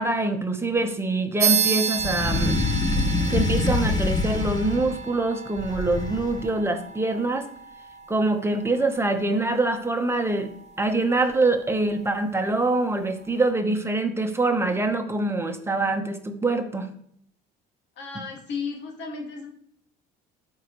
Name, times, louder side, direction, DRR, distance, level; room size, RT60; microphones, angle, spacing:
voice 1, 0.0-2.6 3.3-7.5 8.1-10.5 10.8-16.9, right 2 dB, 10° right, 5 dB, 1.2 m, -24 dB
sound 1, 1.4-11.4, right 7 dB, 35° right, 0.9 m, -32 dB
sound 2, 2.0-5.0 5.6-6.5, left 3 dB, 20° left, 1.1 m, -25 dB
voice 2, 18.0-19.5, left 5 dB, 65° left, 0 dB, 2.2 m, -34 dB
12.0 x 4.7 x 3.2 m, 0.67 s
supercardioid pair, 80°, 20 cm